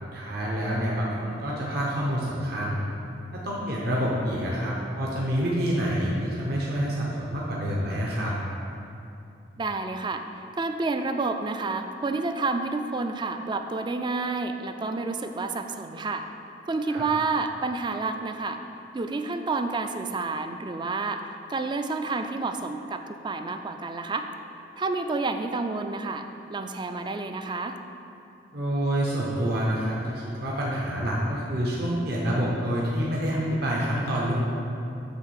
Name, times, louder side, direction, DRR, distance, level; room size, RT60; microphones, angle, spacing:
voice 1, 0.0-2.8 3.3-8.3 16.9-17.0 28.5-34.4, equal, 60° right, -5 dB, 1.0 m, -27 dB
voice 2, 9.6-10.2 10.6-16.3 16.7-18.6 18.9-24.3 24.8-27.8, right 3 dB, 25° right, 7 dB, 0.3 m, -29 dB
8.1 x 3.3 x 6.4 m, 2.7 s
head